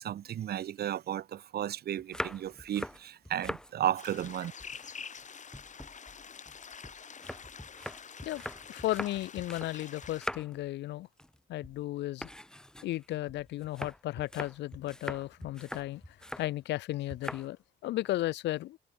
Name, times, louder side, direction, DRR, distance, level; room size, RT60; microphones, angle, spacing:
voice 1, 0.0-4.5, right 11 dB, 65° right, 1.3 m, -34 dB
sound 1, 2.0-3.7 4.1-5.2 5.5-9.8 10.0-10.7 11.0-11.4 11.6-11.8 12.2-16.5 17.1-17.5 17.8-18.2, left 1 dB, 5° left, 4.2 m, -42 dB
sound 2, 4.0-10.2, left 6 dB, 45° left, 4.3 m, -47 dB
voice 2, 8.7-11.1 11.5-12.3 12.8-18.8, left 15 dB, 85° left, 0.9 m, -35 dB
cardioid pair, 90°, 18 cm